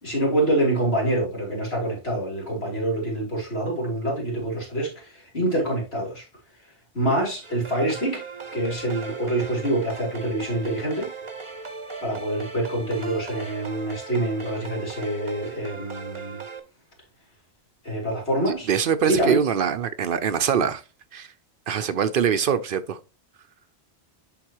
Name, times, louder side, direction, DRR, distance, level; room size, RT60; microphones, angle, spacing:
voice 1, 0.0-6.3 6.9-8.2 8.5-11.1 12.0-16.4 17.8-18.7 19.1-19.4, right 1 dB, 75° left, 3.4 m, -26 dB
sound 1, 7.4-16.6, right 4 dB, 30° right, 0.8 m, -38 dB
voice 2, 18.7-20.8 21.1-21.3 21.7-23.0, right 7 dB, 60° right, 0.7 m, -23 dB
10.5 x 4.0 x 2.9 m
omnidirectional pair, 1.1 m